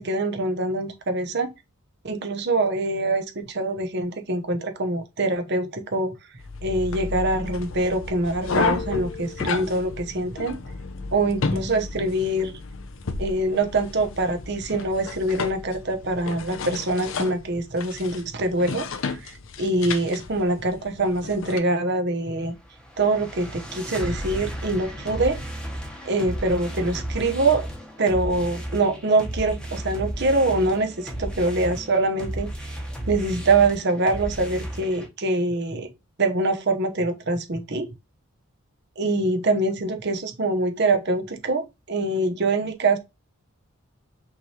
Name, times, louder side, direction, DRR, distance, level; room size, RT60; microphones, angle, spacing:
voice 1, 0.0-1.5 2.0-6.1 6.6-10.6 11.1-12.5 13.2-22.5 23.0-25.4 26.1-27.7 28.0-32.7 33.1-35.9 36.2-37.9 39.0-43.0, right 2 dB, 50° right, 0.8 m, -24 dB
sound 1, 6.4-21.6, left 4 dB, 65° left, 0.6 m, -32 dB
sound 2, 22.4-35.1, right 1 dB, 5° left, 1.0 m, -34 dB
5.9 x 3.2 x 2.9 m
head